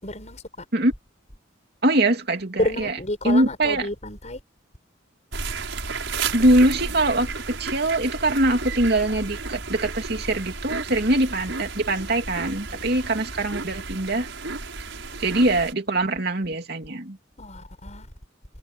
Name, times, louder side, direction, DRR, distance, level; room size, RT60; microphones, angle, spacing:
voice 1, 0.0-0.4 2.6-4.4 10.9-11.0 12.7-13.0 17.4-18.1, left 1 dB, 35° left, 6.3 m, -30 dB
voice 2, 1.8-3.0 3.2-3.9 6.3-14.3 15.2-17.2, right 1 dB, 55° right, 2.9 m, -22 dB
sound 1, 5.3-15.7, right 4 dB, 80° right, 5.6 m, -33 dB
head